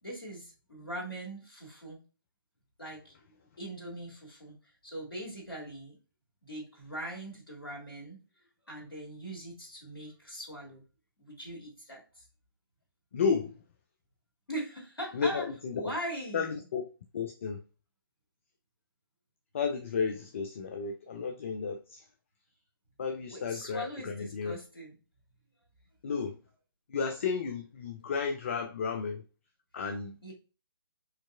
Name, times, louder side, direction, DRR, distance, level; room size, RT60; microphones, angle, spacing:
voice 1, 0.0-2.0 2.8-3.1 3.6-6.0 6.4-8.2 8.7-10.8 11.2-12.3 14.5-15.5 15.7-16.6 23.3-25.0 30.2-30.3, right 1 dB, 70° left, 1.9 m, -41 dB
voice 2, 13.1-13.6 15.1-15.8 16.3-16.8 17.1-17.6 19.5-22.0 23.0-24.6 26.0-26.4 26.9-29.2 29.7-30.2, left 5 dB, 35° left, 0.4 m, -32 dB
4.5 x 2.8 x 2.4 m
figure-of-eight pair, 140°, 12 cm